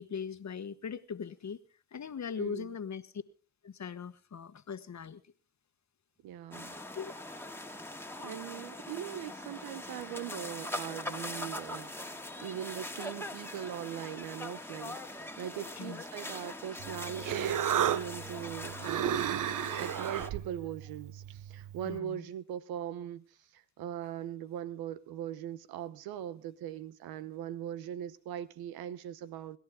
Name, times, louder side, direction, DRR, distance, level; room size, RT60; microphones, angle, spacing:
voice 1, 0.0-1.6 1.9-3.2 3.6-5.2 6.9-7.1 15.8-16.0 21.8-22.2, left 6 dB, 50° left, 1.4 m, -40 dB
voice 2, 2.4-2.8 6.2-6.8 8.2-11.9 12.4-19.2 19.8-29.6, right 10 dB, 85° right, 1.0 m, -40 dB
sound 1, 6.5-20.3, left 1 dB, 5° left, 2.0 m, -42 dB
Human voice, 16.8-22.0, right 10 dB, 60° right, 0.8 m, -34 dB
25.5 x 12.0 x 3.7 m
supercardioid pair, 50°, 36 cm